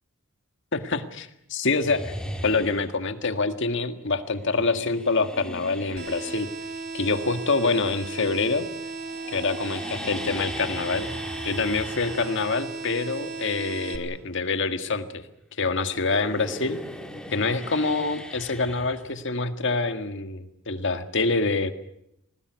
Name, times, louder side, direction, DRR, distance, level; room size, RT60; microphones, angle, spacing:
voice 1, 0.7-2.1 2.4-6.5 6.9-8.7 9.3-11.1 11.4-15.2 15.6-16.8 17.3-21.7, left 3 dB, 55° left, 9 dB, 1.8 m, -26 dB
sound 1, 1.8-3.1 4.3-8.6 8.8-15.5 15.7-19.6, equal, 5° left, 2.0 m, -39 dB
sound 2, 6.0-14.0, right 3 dB, 45° right, 3.3 m, -36 dB
21.5 x 19.5 x 9.4 m, 0.78 s
head